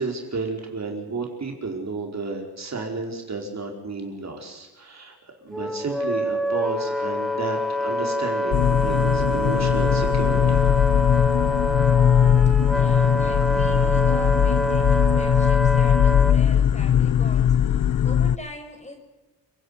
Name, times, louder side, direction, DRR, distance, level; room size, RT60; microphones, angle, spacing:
voice 1, 0.0-5.1 5.4-10.6, right 3 dB, 45° right, 1 dB, 4.8 m, -32 dB
Wind instrument woodwind instrument, 5.5-16.4, equal, ahead, 1.0 m, -26 dB
sound 1, 8.5-18.4, left 9 dB, 55° left, 0.7 m, -20 dB
voice 2, 12.4-19.0, left 1 dB, 15° left, 4 dB, 5.9 m, -41 dB
29.5 x 11.0 x 9.8 m, 1.1 s
wide cardioid pair, 120°, 38 cm